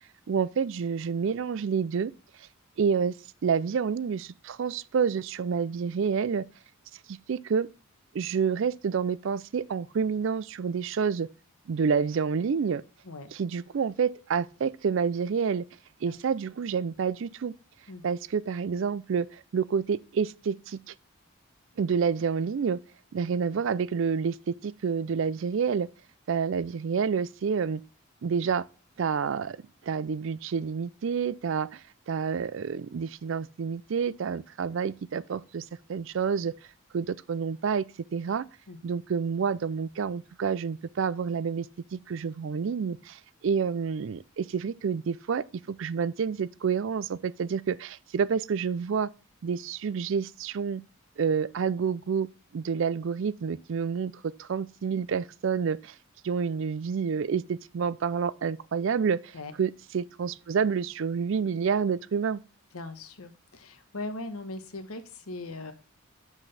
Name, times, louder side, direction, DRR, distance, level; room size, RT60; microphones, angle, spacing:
voice 1, 0.3-2.1 2.8-3.1 3.4-6.4 7.1-7.7 8.1-11.3 11.7-12.8 13.3-15.7 16.0-17.5 18.0-20.9 21.8-22.8 23.1-25.9 26.3-27.8 28.2-28.7 29.0-29.6 29.8-35.6 35.9-36.5 36.9-37.8 38.1-38.5 38.8-41.7 41.9-49.1 49.4-50.8 51.2-52.3 52.5-56.0 56.2-62.4, right 6 dB, 60° right, 0.3 m, -28 dB
voice 2, 62.7-65.7, left 2 dB, 80° left, 1.1 m, -39 dB
7.7 x 6.2 x 3.3 m
head